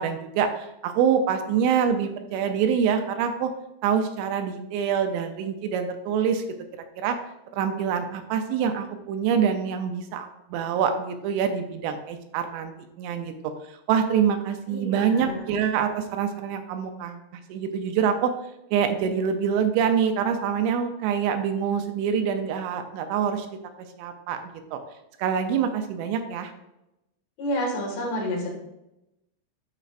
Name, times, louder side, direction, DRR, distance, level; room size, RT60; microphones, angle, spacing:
voice 1, 0.0-3.5 3.8-6.4 7.0-7.2 7.5-12.7 13.0-13.3 13.9-17.2 17.5-18.3 18.7-23.5 24.0-24.8 25.2-26.5, right 7 dB, 85° right, 6 dB, 2.8 m, -25 dB
voice 2, 14.7-15.5 27.4-28.5, equal, 75° left, -2 dB, 4.1 m, -29 dB
12.0 x 4.4 x 2.5 m, 0.89 s
omnidirectional pair, 5.1 m